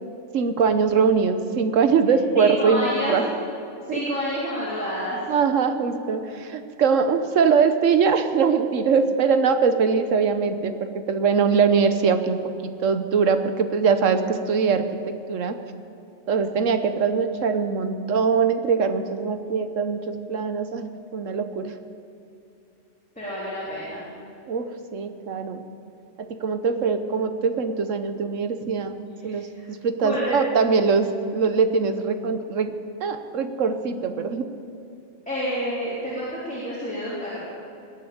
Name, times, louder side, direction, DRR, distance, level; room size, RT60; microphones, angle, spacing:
voice 1, 0.3-3.3 3.9-4.0 5.3-15.6 16.3-21.7 24.5-25.6 26.2-29.0 29.2-34.5, right 5 dB, 80° right, 9 dB, 1.3 m, -22 dB
voice 2, 2.4-3.2 3.9-5.2 5.7-5.8 23.2-24.1 29.2-29.6 30.0-30.2 35.3-37.4, equal, 5° left, -10 dB, 3.8 m, -29 dB
19.5 x 8.1 x 8.7 m, 2.6 s
omnidirectional pair, 1.3 m